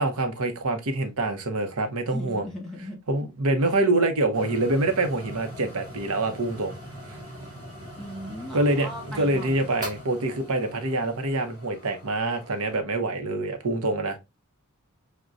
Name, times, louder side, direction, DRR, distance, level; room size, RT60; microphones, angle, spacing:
voice 1, 0.0-2.5 3.1-6.8 8.5-8.9 9.1-14.2, right 2 dB, 80° right, 0.8 m, -25 dB
voice 2, 2.1-3.0 8.0-9.8, left 1 dB, ahead, 1.2 m, -38 dB
sound 1, 4.3-12.8, equal, 20° right, 2.4 m, -41 dB
6.0 x 2.1 x 2.5 m
head